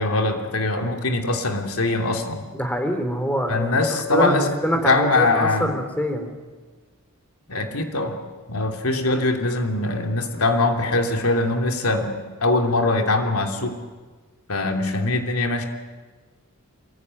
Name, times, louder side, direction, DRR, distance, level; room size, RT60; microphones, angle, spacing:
voice 1, 0.0-2.4 3.5-4.5 4.8-5.8 7.5-8.2 8.5-13.8 14.5-15.6, left 2 dB, 90° left, 4 dB, 3.0 m, -22 dB
voice 2, 2.5-3.7 4.1-4.4 4.6-6.3 7.6-7.7, equal, 5° left, 6 dB, 3.6 m, -24 dB
26.5 x 23.0 x 9.9 m, 1.4 s
head